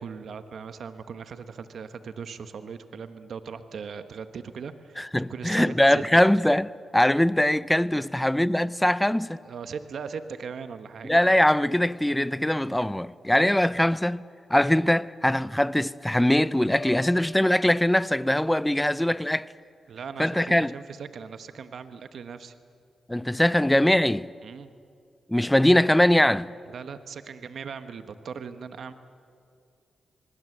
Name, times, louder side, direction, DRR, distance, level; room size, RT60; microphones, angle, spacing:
voice 1, 0.0-5.0 5.3-6.2 7.9-8.1 9.4-11.1 19.9-22.5 24.4-24.7 26.7-28.9, right 6 dB, 70° right, 1.1 m, -39 dB
voice 2, 5.0-6.7 6.9-9.4 11.0-19.5 20.2-20.7 23.1-24.3 25.3-26.5, left 1 dB, 10° left, 0.6 m, -22 dB
sound 1, 16.7-18.6, left 4 dB, 35° left, 2.5 m, -43 dB
26.0 x 20.0 x 7.9 m
cardioid pair, 65°, 0 cm